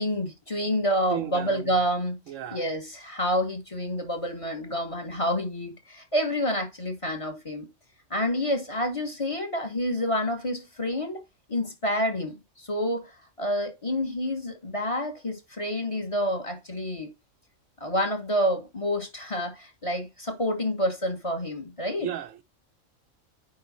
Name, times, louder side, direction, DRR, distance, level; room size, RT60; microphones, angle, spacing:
voice 1, 0.0-2.2 2.5-7.7 8.1-11.2 11.5-13.1 13.4-17.1 17.8-22.1, equal, 25° left, 1.5 m, -28 dB
voice 2, 1.1-1.8 2.3-2.7 22.0-22.4, right 10 dB, 70° right, 1.0 m, -34 dB
9.5 x 3.7 x 4.2 m
omnidirectional pair, 1.5 m